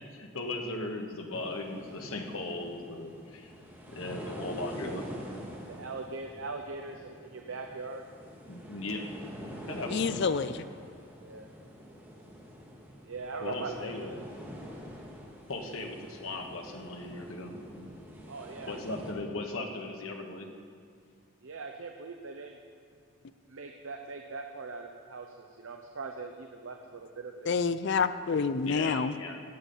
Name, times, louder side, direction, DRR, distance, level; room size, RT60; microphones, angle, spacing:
voice 1, 0.1-3.5 3.9-5.1 8.5-9.1 9.4-10.0 13.4-14.2 15.5-17.9 18.7-20.5 28.6-29.4, left 2 dB, 80° left, 2 dB, 1.4 m, -38 dB
Beach Waves Medium, 1.3-19.1, equal, 10° right, 1.7 m, -46 dB
voice 2, 5.7-8.1 11.2-11.5 13.0-14.2 18.3-18.8 21.4-22.6 23.5-27.5, right 4 dB, 70° right, 3 dB, 0.7 m, -41 dB
voice 3, 9.9-10.6 27.5-29.1, left 5 dB, 55° left, 13 dB, 0.4 m, -28 dB
16.5 x 7.2 x 5.5 m, 2.3 s
head